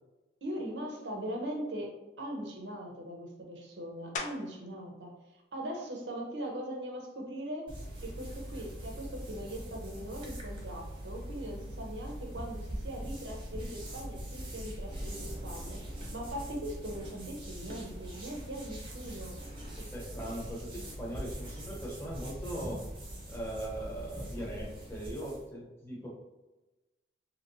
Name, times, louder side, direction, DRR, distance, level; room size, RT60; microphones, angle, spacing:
voice 1, 0.4-7.7 8.0-15.8 16.1-19.4, equal, 85° right, 1 dB, 0.8 m, -40 dB
sound 1, 4.2-4.7 5.3-9.7 10.2-15.4 15.7-21.3, left 4 dB, 40° left, 0.4 m, -50 dB
sound 2, 7.7-25.5, right 1 dB, 30° right, 0.8 m, -42 dB
voice 2, 19.7-22.8 23.3-26.1, right 1 dB, 15° left, -4 dB, 0.8 m, -40 dB
3.0 x 2.8 x 2.6 m, 1.1 s
head